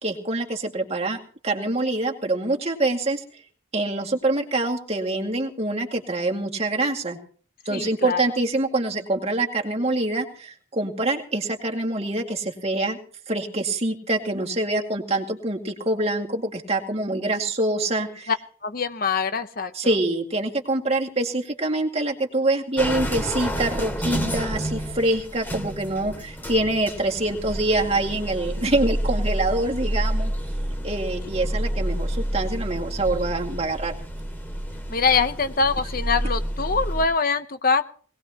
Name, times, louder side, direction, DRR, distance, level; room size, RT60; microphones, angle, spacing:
voice 1, 0.0-3.2 3.7-7.2 7.7-13.0 13.3-18.3 19.7-30.3 30.8-34.0, right 2 dB, 30° right, 1 dB, 2.2 m, -25 dB
voice 2, 7.7-8.2 18.6-19.7 34.9-37.8, left 5 dB, 45° left, 10 dB, 0.8 m, -23 dB
sound 1, 22.8-37.1, equal, 10° left, 2.4 m, -29 dB
21.5 x 18.5 x 3.0 m, 0.44 s
head